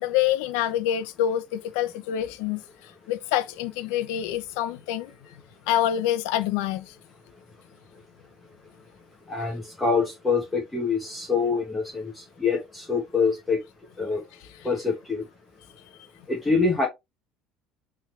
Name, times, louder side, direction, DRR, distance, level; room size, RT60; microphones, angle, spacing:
voice 1, 0.0-5.1 5.7-6.9, left 11 dB, 75° left, 0.8 m, -26 dB
voice 2, 9.3-13.6 14.0-14.2 14.6-15.2 16.3-16.9, left 4 dB, 10° left, 1.4 m, -25 dB
8.4 x 3.5 x 3.4 m
cardioid pair, 180°, 0 cm